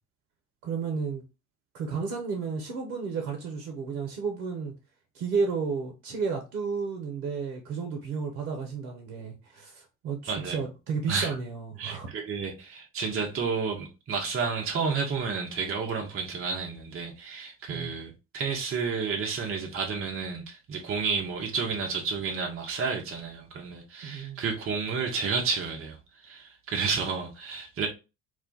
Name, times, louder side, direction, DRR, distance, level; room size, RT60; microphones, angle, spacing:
voice 1, 0.6-1.2 1.7-4.7 5.1-12.1 17.7-17.9 24.0-24.4, right 5 dB, 70° right, 0.8 m, -32 dB
voice 2, 10.3-10.6 11.1-11.4 11.8-27.9, right 5 dB, 30° right, 0.7 m, -31 dB
2.4 x 2.2 x 3.8 m
figure-of-eight pair, 55°, 46 cm